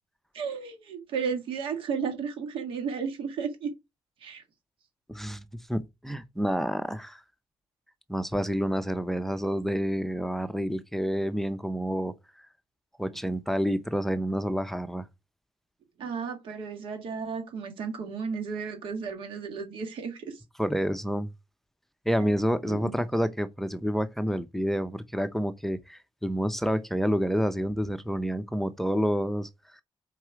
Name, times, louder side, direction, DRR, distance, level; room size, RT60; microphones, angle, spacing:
voice 1, 0.3-3.7 4.2-4.4 16.0-20.4 22.6-22.9, right 6 dB, 80° right, 1.8 m, -33 dB
voice 2, 5.1-7.2 8.1-12.1 13.0-15.1 20.6-21.3 22.1-29.5, equal, 5° left, 0.6 m, -28 dB
4.7 x 4.6 x 5.9 m
cardioid pair, 110°, 9 cm